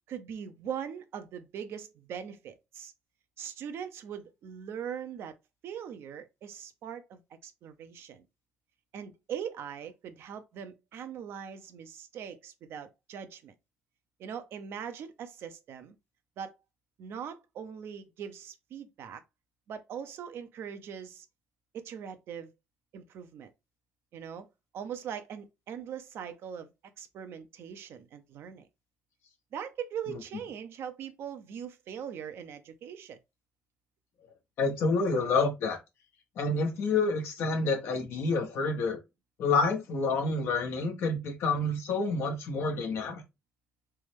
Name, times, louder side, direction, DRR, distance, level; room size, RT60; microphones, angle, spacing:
voice 1, 0.1-2.9 3.4-5.3 5.6-8.3 8.9-13.5 14.2-15.9 16.4-16.5 17.0-19.2 19.7-21.3 21.7-22.5 22.9-23.5 24.1-24.5 24.7-26.7 27.0-28.7 29.5-33.2, right 8 dB, 75° right, 0.6 m, -41 dB
voice 2, 34.6-35.8 36.4-39.0 39.4-43.2, left 3 dB, 80° left, 1.0 m, -28 dB
3.4 x 3.1 x 3.3 m
cardioid pair, 75°, 4 cm